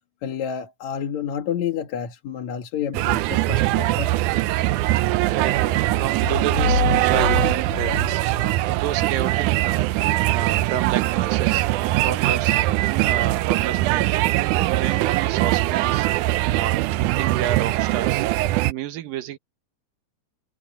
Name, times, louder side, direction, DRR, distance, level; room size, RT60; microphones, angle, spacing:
voice 1, 0.2-4.1, left 8 dB, 55° left, 2.5 m, -29 dB
sound 1, 2.9-18.7, right 16 dB, 90° right, 1.7 m, -21 dB
voice 2, 5.3-8.2 8.6-9.9 10.3-11.6 12.0-12.5 12.9-14.1 14.3-16.1 16.5-18.2 18.7-19.4, right 11 dB, 70° right, 3.1 m, -30 dB
sound 2, 6.2-9.1, left 9 dB, 80° left, 3.9 m, -27 dB
omnidirectional pair, 4.2 m